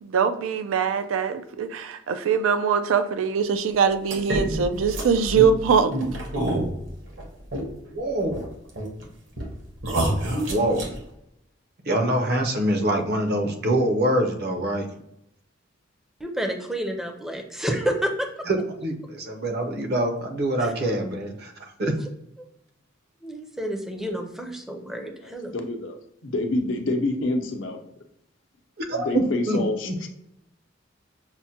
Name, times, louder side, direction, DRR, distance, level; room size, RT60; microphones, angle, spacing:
voice 1, 0.0-5.9, right 6 dB, 90° right, 0.4 m, -22 dB
sound 1, 4.1-7.9 8.2-9.0 9.4-9.5 9.8-11.0, right 1 dB, 70° right, 1.1 m, -27 dB
voice 2, 7.9-8.5 10.5-10.9 11.9-14.9 18.5-18.9 19.4-21.9 28.8-30.0, right 1 dB, 55° right, 0.7 m, -25 dB
voice 3, 16.2-18.3 20.6-20.7 21.8-21.9 23.2-25.5, equal, ahead, 0.5 m, -29 dB
voice 4, 25.2-25.9 26.2-27.8 29.0-30.1, left 2 dB, 70° left, 0.7 m, -27 dB
5.8 x 2.1 x 2.8 m
head